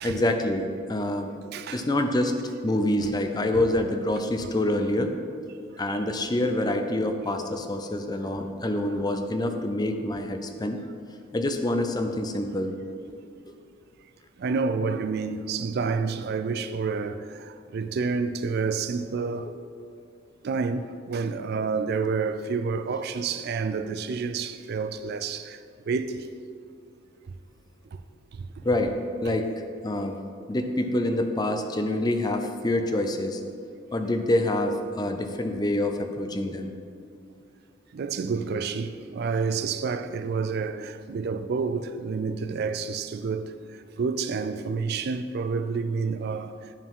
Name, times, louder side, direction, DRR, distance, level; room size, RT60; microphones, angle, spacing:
voice 1, 0.0-1.3 1.7-2.3 2.6-5.1 5.8-10.8 11.3-12.8 19.5-19.6 28.6-28.9 29.2-29.5 29.8-30.2 30.5-33.4 33.9-36.7, left 1 dB, 20° left, 0.4 m, -26 dB
voice 2, 1.5-1.8 14.4-19.5 20.4-25.6 25.9-26.2 29.3-29.4 37.9-43.5 44.0-46.5, right 5 dB, 50° right, 0.3 m, -29 dB
10.5 x 4.5 x 3.6 m
head